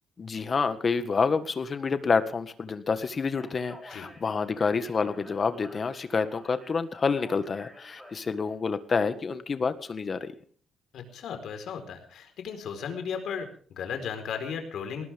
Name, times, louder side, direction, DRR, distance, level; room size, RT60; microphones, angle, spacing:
voice 1, 0.2-10.3, left 5 dB, 30° left, 10 dB, 1.7 m, -28 dB
Speech, 3.2-8.5, left 1 dB, ahead, 4.9 m, -51 dB
voice 2, 10.9-15.1, left 7 dB, 65° left, 7 dB, 4.5 m, -35 dB
19.5 x 19.0 x 3.6 m, 0.44 s
cardioid pair, 155°, 0 cm